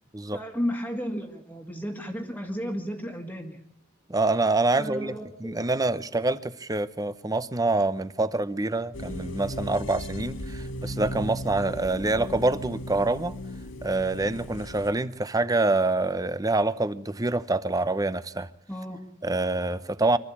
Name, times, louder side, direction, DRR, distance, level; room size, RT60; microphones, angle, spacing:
voice 1, 0.3-3.6 4.8-5.6 18.7-19.1, equal, 10° left, 1.8 m, -33 dB
voice 2, 4.1-5.1 5.4-13.3 13.8-18.5 19.2-20.2, right 2 dB, 20° right, 0.8 m, -26 dB
sound 1, 8.9-14.9, equal, 75° left, 1.5 m, -36 dB
25.5 x 14.0 x 8.6 m
head